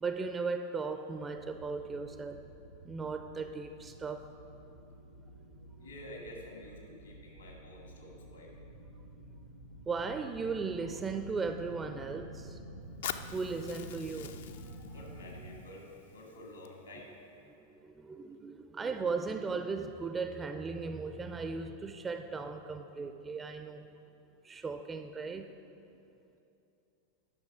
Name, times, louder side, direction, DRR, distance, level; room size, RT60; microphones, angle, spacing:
voice 1, 0.0-2.4 2.8-4.3 9.9-12.6 13.3-14.3 14.7-14.9 17.6-23.9 24.4-25.7, right 4 dB, 15° right, 8 dB, 0.4 m, -37 dB
sound 1, 1.1-15.6, right 1 dB, 90° right, 0.8 m, -50 dB
voice 2, 5.8-8.5 14.9-17.1, left 1 dB, 75° left, -1 dB, 1.9 m, -49 dB
Fire, 13.0-17.0, left 9 dB, 60° left, 0.4 m, -45 dB
10.5 x 6.1 x 4.9 m, 2.7 s
figure-of-eight pair, 90°, 0 cm